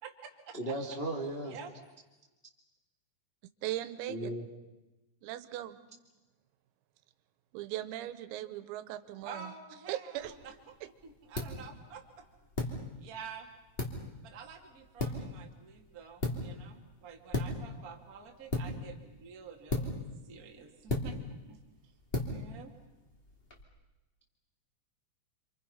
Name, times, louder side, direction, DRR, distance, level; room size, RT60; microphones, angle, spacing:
voice 1, 0.0-0.8 1.4-1.7 9.2-10.8 11.0-12.2 12.6-13.5 14.2-21.6 22.3-22.7, right 6 dB, 55° right, 1 dB, 0.9 m, -49 dB
voice 2, 0.5-1.6 4.1-4.4, right 1 dB, 80° left, -1 dB, 0.5 m, -36 dB
voice 3, 3.6-4.3 5.2-5.8 7.5-9.5 9.9-10.3, right 13 dB, 90° right, 12 dB, 3.7 m, -38 dB
sound 1, 10.1-23.6, left 2 dB, 30° left, 1.0 m, -39 dB
29.0 x 26.5 x 5.7 m, 1.1 s
omnidirectional pair, 5.9 m